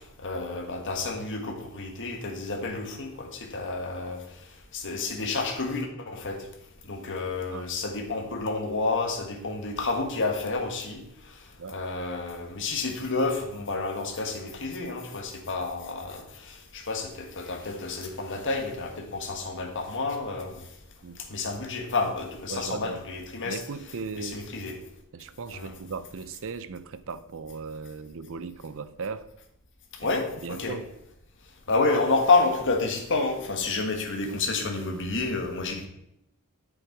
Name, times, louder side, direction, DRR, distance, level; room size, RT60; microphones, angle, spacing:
voice 1, 0.2-4.2 4.7-6.4 6.9-11.0 11.7-20.5 21.3-23.6 24.2-24.8 25.5-25.7 30.0-30.8 31.7-35.9, left 3 dB, 60° left, 3 dB, 1.6 m, -29 dB
voice 2, 22.5-23.0 23.4-24.5 25.1-29.3 30.0-30.9, right 4 dB, 65° right, 14 dB, 0.6 m, -37 dB
8.8 x 6.5 x 4.6 m, 0.80 s
head